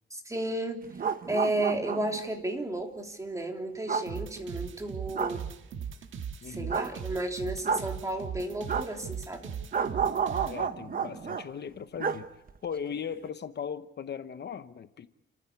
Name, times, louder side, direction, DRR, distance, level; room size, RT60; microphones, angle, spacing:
voice 1, 0.1-0.8 1.3-5.4 6.4-9.5, right 1 dB, 15° right, 3.4 m, -33 dB
sound 1, 0.8-2.2 3.9-4.1 5.1-5.4 6.7-6.9 7.6-7.9 8.7-8.9 9.7-11.4 12.0-12.2 12.5-12.6, right 6 dB, 50° right, 1.2 m, -30 dB
sound 2, 4.1-10.6, right 7 dB, 90° right, 1.6 m, -38 dB
voice 2, 6.4-6.8 10.4-12.3 12.6-15.1, left 7 dB, 60° left, 1.0 m, -38 dB
29.5 x 14.5 x 8.3 m
wide cardioid pair, 135°, 20 cm